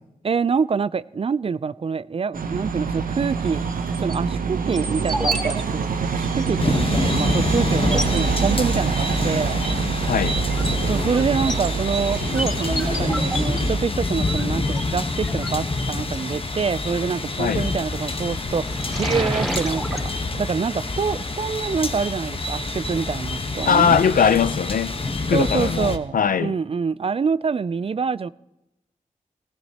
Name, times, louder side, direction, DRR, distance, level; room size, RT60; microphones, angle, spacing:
voice 1, 0.2-3.7 4.0-9.6 10.9-24.0 25.3-28.3, right 5 dB, 40° right, 0.3 m, -26 dB
sound 1, 2.3-13.8, right 5 dB, 80° right, 0.7 m, -26 dB
sound 2, 3.7-4.2 4.7-5.5 5.8-5.9 6.4-6.5 7.2-7.3 7.7-8.2 9.4-9.8 10.2-16.1 17.7-18.1 18.5-20.1, equal, ahead, 3.8 m, -30 dB
sound 3, 6.6-26.0, left 2 dB, 40° left, 1.1 m, -27 dB
voice 2, 10.1-10.4 17.4-17.7 23.7-24.9 25.3-26.5, left 7 dB, 75° left, 0.5 m, -20 dB
17.5 x 16.0 x 2.9 m
cardioid pair, 50°, 14 cm